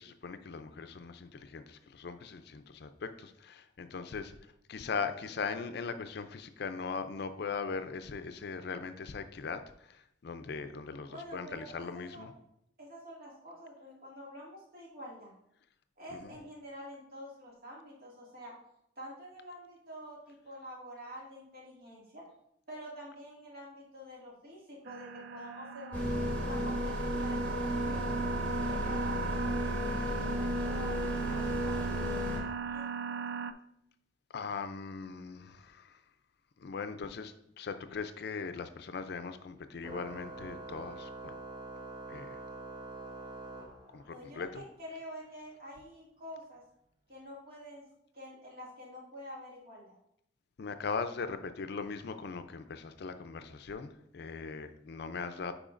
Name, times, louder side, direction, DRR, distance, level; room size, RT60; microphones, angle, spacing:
voice 1, 0.0-4.3 4.7-12.3 16.1-16.3 34.3-36.0 36.6-41.3 42.1-42.4 43.9-44.6 50.6-55.5, left 5 dB, 60° left, 10 dB, 0.4 m, -40 dB
voice 2, 11.1-12.3 12.8-15.3 16.0-18.5 19.0-22.2 22.7-26.0 26.3-28.1 28.5-33.2 44.1-46.6 47.1-47.8 48.1-50.0, equal, 55° right, -4 dB, 2.1 m, -47 dB
sound 1, 24.9-33.5, right 6 dB, 75° right, 0.3 m, -38 dB
sound 2, 25.9-32.4, left 1 dB, 10° left, 1.3 m, -34 dB
Organ, 39.8-44.3, right 3 dB, 25° right, 0.8 m, -45 dB
8.8 x 4.9 x 2.5 m, 0.76 s
head